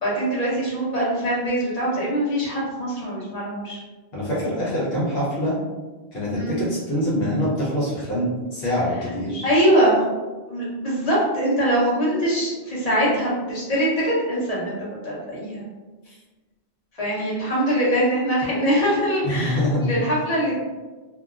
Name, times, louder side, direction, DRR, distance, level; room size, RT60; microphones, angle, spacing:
voice 1, 0.0-3.8 6.3-6.6 9.4-10.0 10.5-14.8 15.0-15.6 17.0-20.5, equal, 40° left, -6 dB, 0.8 m, -22 dB
voice 2, 4.1-5.6 6.1-9.4 16.0-16.2 19.2-20.0, equal, 70° left, -7 dB, 0.9 m, -24 dB
2.9 x 2.2 x 2.4 m, 1.3 s
omnidirectional pair, 1.1 m